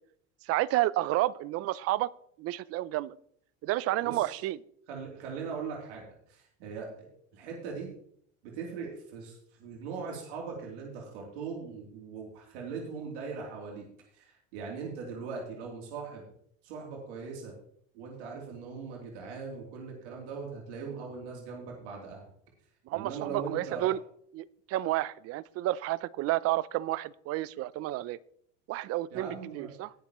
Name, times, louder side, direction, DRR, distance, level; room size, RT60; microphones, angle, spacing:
voice 1, 0.5-2.1 2.4-3.2 3.6-4.6 22.9-24.0 24.3-28.2 28.7-29.9, right 16 dB, 45° right, 20 dB, 0.5 m, -30 dB
voice 2, 4.0-4.4 4.9-7.1 7.3-7.9 8.4-13.9 14.1-16.2 16.6-17.5 17.9-22.2 22.9-23.9 29.1-29.7, right 5 dB, 80° right, -1 dB, 3.2 m, -40 dB
20.0 x 7.0 x 3.1 m, 0.66 s
supercardioid pair, 120°, 34 cm